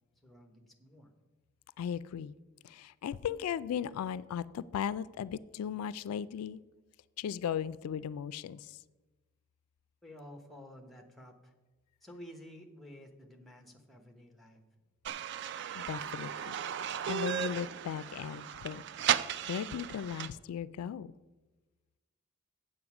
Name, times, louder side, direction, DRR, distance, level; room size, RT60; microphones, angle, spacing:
voice 1, 0.2-1.1 10.0-11.5 12.0-14.6, equal, ahead, 4 dB, 0.9 m, -52 dB
voice 2, 1.8-2.3 2.6-6.6 7.2-8.8 15.7-16.6 17.1-18.8 19.2-21.1, left 8 dB, 90° left, 17 dB, 0.3 m, -37 dB
sound 1, 15.0-20.3, right 9 dB, 50° right, 0.3 m, -35 dB
7.8 x 7.6 x 5.9 m, 1.2 s
head